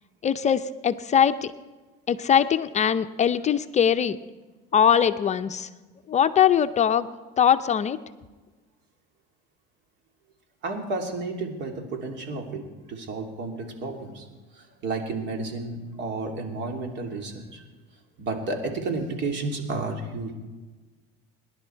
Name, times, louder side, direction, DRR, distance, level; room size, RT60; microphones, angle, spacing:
voice 1, 0.2-1.5 2.1-4.2 4.7-5.7 6.1-7.1 7.4-8.0, left 8 dB, 35° left, 10 dB, 0.6 m, -21 dB
voice 2, 10.6-12.6 12.9-14.3 14.6-17.6 18.2-20.4, right 3 dB, 60° right, 3 dB, 2.8 m, -31 dB
24.5 x 10.5 x 4.5 m, 1.3 s
cardioid pair, 110°, 21 cm